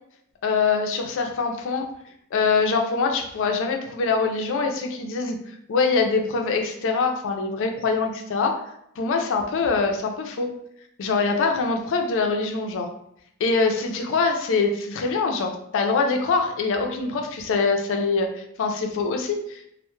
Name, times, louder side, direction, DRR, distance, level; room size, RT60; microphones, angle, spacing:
voice 1, 0.4-1.9 2.3-5.4 5.7-8.6 9.0-10.5 11.0-12.9 13.4-19.6, left 4 dB, 60° left, 4 dB, 0.4 m, -24 dB
2.1 x 2.0 x 3.0 m, 0.74 s
head